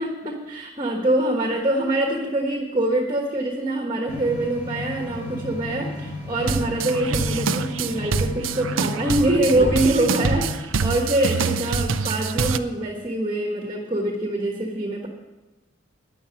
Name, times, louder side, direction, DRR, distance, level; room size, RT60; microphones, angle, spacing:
voice 1, 0.0-15.1, right 1 dB, 25° right, 0 dB, 1.4 m, -24 dB
sound 1, 4.1-10.6, left 1 dB, 40° left, 4.4 m, -32 dB
sound 2, 6.4-12.6, right 5 dB, 80° right, 0.6 m, -26 dB
10.0 x 7.3 x 9.2 m, 1.1 s
head